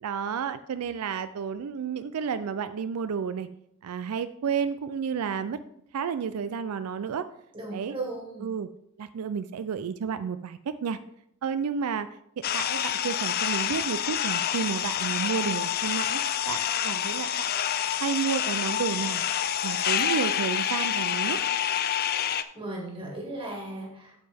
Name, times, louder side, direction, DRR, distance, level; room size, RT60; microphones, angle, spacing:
voice 1, 0.0-3.5 3.8-5.6 5.9-7.3 7.7-7.9 8.4-8.7 9.0-11.0 11.4-12.1 12.5-16.2 16.5-17.5 18.0-19.2 19.6-21.4, right 6 dB, 85° right, 12 dB, 0.4 m, -31 dB
voice 2, 7.5-8.5 22.2-24.3, right 2 dB, 25° right, -1 dB, 2.1 m, -37 dB
sound 1, 12.4-22.4, left 10 dB, 45° left, 0.4 m, -28 dB
8.8 x 7.4 x 3.4 m, 0.76 s
head